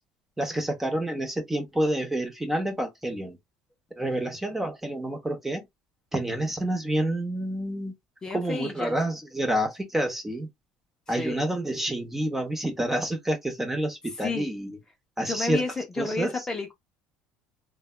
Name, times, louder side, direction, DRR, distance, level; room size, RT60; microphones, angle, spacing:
voice 1, 0.4-3.4 4.0-5.6 6.1-7.9 8.3-10.5 11.1-14.8 15.2-15.6 16.0-16.5, right 1 dB, 10° right, 0.8 m, -28 dB
voice 2, 8.2-9.0 11.2-11.5 14.2-14.5 15.3-16.7, left 3 dB, 20° left, 0.7 m, -31 dB
3.2 x 2.2 x 2.2 m
cardioid pair, 115°, 3 cm